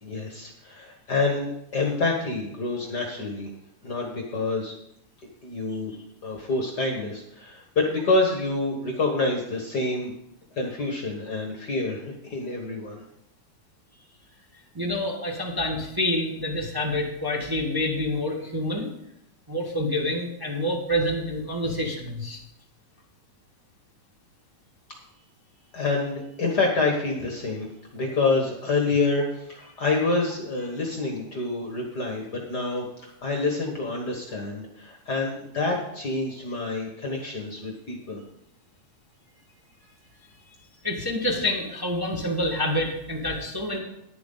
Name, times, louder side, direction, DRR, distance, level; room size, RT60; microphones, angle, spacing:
voice 1, 0.0-3.5 3.8-4.8 5.4-5.9 6.2-10.1 10.5-13.0 25.7-27.7 27.9-38.2, left 3 dB, 50° left, 1 dB, 1.4 m, -27 dB
voice 2, 14.7-18.9 19.5-22.4 40.8-43.8, left 1 dB, 20° right, -1 dB, 0.6 m, -27 dB
10.5 x 10.5 x 3.9 m, 0.79 s
omnidirectional pair, 3.3 m